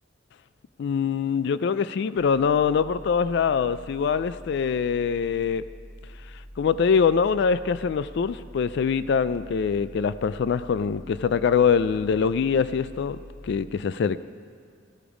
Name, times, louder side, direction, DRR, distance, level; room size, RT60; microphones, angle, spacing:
voice 1, 0.8-5.6 6.6-13.2 13.4-14.2, left 6 dB, 65° left, 15 dB, 0.3 m, -23 dB
sound 1, 2.2-13.6, equal, 25° left, 2.3 m, -45 dB
15.5 x 12.0 x 5.0 m, 2.2 s
head